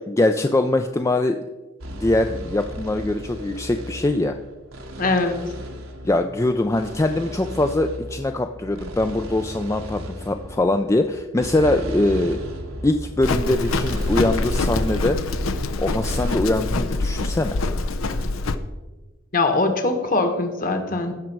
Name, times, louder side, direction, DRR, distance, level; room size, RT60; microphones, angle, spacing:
voice 1, 0.1-1.4 1.9-4.4 6.0-12.4 12.8-15.2 15.8-17.6, left 2 dB, 15° left, 6 dB, 0.3 m, -22 dB
sound 1, 1.8-16.4, equal, 90° right, 1.6 m, -34 dB
voice 2, 5.0-5.4 19.3-21.1, left 3 dB, 45° left, 6 dB, 1.4 m, -22 dB
Livestock farm animals working animals, 13.2-18.6, left 2 dB, 85° left, 0.7 m, -25 dB
15.5 x 6.2 x 4.5 m, 1.2 s
head